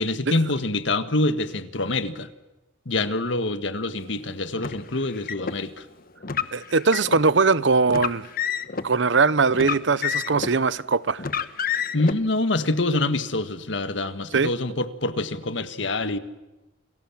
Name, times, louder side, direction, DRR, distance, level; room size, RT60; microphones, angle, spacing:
voice 1, 0.0-2.3 2.8-5.9 11.9-16.2, left 2 dB, 70° left, 1.7 m, -25 dB
Car, 4.6-5.6 6.2-7.2 7.9-8.9 9.5-10.6 11.2-12.1, left 7 dB, 50° left, 1.2 m, -28 dB
voice 2, 6.5-8.3 8.8-11.2 14.3-14.5, right 4 dB, 65° right, 0.8 m, -21 dB
29.5 x 21.5 x 7.3 m
head